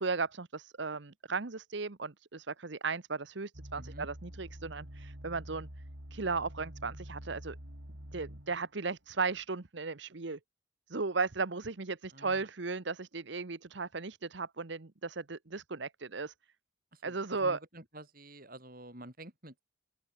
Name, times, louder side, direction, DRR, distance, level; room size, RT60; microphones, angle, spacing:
voice 1, 0.0-5.7 6.1-7.6 8.1-10.4 10.9-16.3 17.0-17.6, right 4 dB, 60° right, 1.0 m, -36 dB
sound 1, 3.5-8.7 9.3-9.4, equal, 75° right, 6.3 m, -47 dB
voice 2, 3.7-4.1 12.1-12.5 16.9-19.6, right 1 dB, 45° right, 6.4 m, -49 dB
open air
head